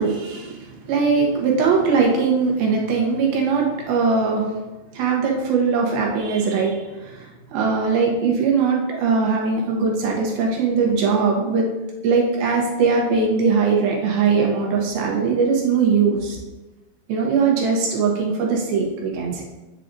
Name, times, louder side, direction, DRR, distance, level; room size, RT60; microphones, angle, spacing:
voice 1, 0.0-4.5 4.9-11.7 12.0-16.4 17.1-19.4, right 5 dB, 75° right, -1 dB, 3.0 m, -20 dB
8.2 x 7.5 x 2.7 m, 1.1 s
omnidirectional pair, 4.3 m